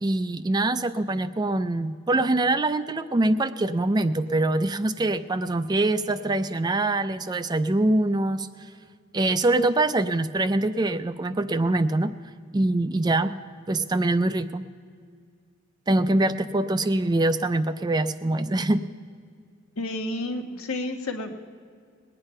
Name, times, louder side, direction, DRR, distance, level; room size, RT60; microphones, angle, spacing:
voice 1, 0.0-8.5 9.1-12.1 12.5-13.3 13.7-14.7 15.9-18.8, right 2 dB, 20° right, 12 dB, 0.4 m, -24 dB
voice 2, 19.8-21.3, left 2 dB, 85° left, 5 dB, 1.3 m, -30 dB
20.5 x 8.9 x 5.5 m, 2.1 s
head